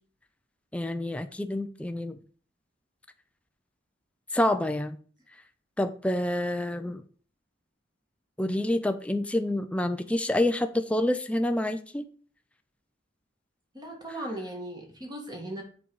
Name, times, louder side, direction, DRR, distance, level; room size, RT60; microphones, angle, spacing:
voice 1, 0.7-2.2 4.3-5.0 5.8-7.0 8.4-12.0, left 1 dB, 5° left, 7 dB, 0.5 m, -27 dB
voice 2, 13.7-15.6, right 1 dB, 20° right, 1 dB, 2.1 m, -37 dB
7.4 x 4.6 x 5.4 m, 0.42 s
head